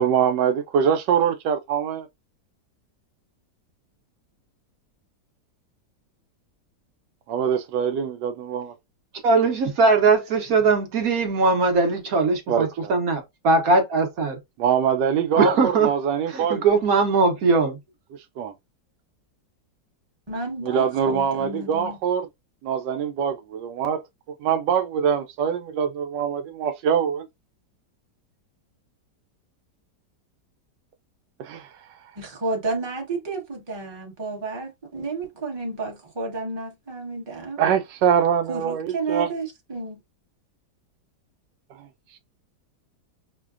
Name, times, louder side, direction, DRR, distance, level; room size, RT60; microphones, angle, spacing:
voice 1, 0.0-2.1 7.3-8.7 12.5-12.9 14.6-16.6 18.4-18.5 20.6-22.3 22.6-24.0 24.4-27.3 31.4-31.6 37.6-39.3, right 8 dB, 85° right, 1.2 m, -23 dB
voice 2, 9.2-14.4 15.4-15.9 16.3-17.8, right 4 dB, 60° right, 1.2 m, -20 dB
voice 3, 20.3-22.0 32.1-37.6 38.5-40.0, right 3 dB, 20° right, 0.9 m, -31 dB
5.7 x 2.2 x 2.4 m
omnidirectional pair, 1.9 m